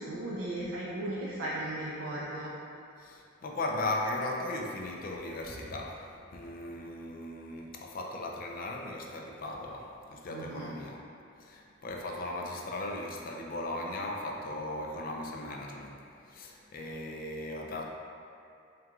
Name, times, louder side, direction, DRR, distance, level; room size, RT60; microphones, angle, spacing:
voice 1, 0.0-2.5 10.3-10.7, right 1 dB, 75° right, -6 dB, 0.4 m, -36 dB
voice 2, 3.0-11.0 11.4-17.9, left 2 dB, 45° left, 0 dB, 0.4 m, -37 dB
4.4 x 2.3 x 3.6 m, 2.5 s
head